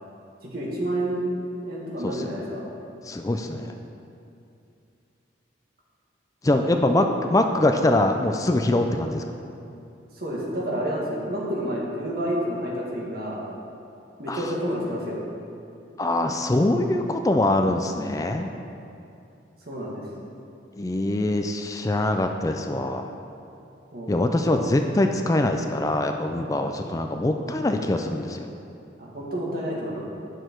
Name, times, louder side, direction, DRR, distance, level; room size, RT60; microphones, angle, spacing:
voice 1, 0.4-1.3 1.6-2.6 6.4-7.1 10.1-13.4 14.2-15.2 19.7-20.0 23.9-24.1 24.4-24.6 29.0-30.0, right 1 dB, 50° right, -4 dB, 1.7 m, -29 dB
voice 2, 3.0-3.8 6.4-9.2 14.3-14.5 16.0-18.5 20.8-23.1 24.1-28.5, left 1 dB, 20° left, 5 dB, 0.3 m, -23 dB
8.8 x 6.4 x 4.5 m, 2.6 s
head